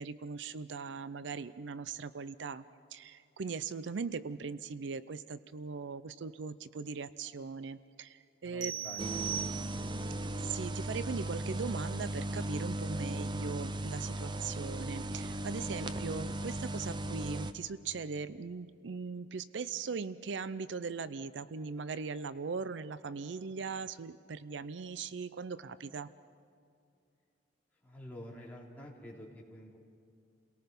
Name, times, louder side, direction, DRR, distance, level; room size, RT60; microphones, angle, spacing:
voice 1, 0.0-2.6 2.9-8.7 10.3-26.1, right 5 dB, 70° right, 15 dB, 0.5 m, -40 dB
voice 2, 8.4-9.3 27.8-29.8, left 1 dB, 10° left, -4 dB, 3.3 m, -48 dB
sound 1, 8.6-10.2, right 10 dB, 90° right, 1.5 m, -39 dB
sound 2, 9.0-17.5, right 1 dB, 25° right, 0.6 m, -37 dB
29.5 x 18.0 x 5.4 m, 2.4 s
head